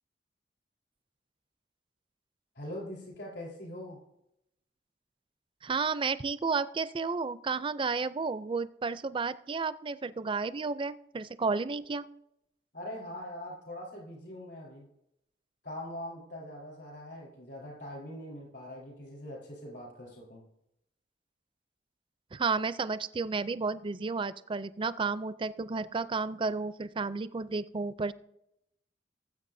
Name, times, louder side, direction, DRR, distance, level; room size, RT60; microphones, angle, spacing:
voice 1, 2.6-4.0 12.7-14.9 15.6-20.4, left 1 dB, 70° left, -2 dB, 4.1 m, -42 dB
voice 2, 5.6-12.1 22.3-28.1, right 4 dB, 30° right, 15 dB, 0.4 m, -32 dB
19.0 x 7.9 x 2.6 m, 0.81 s
head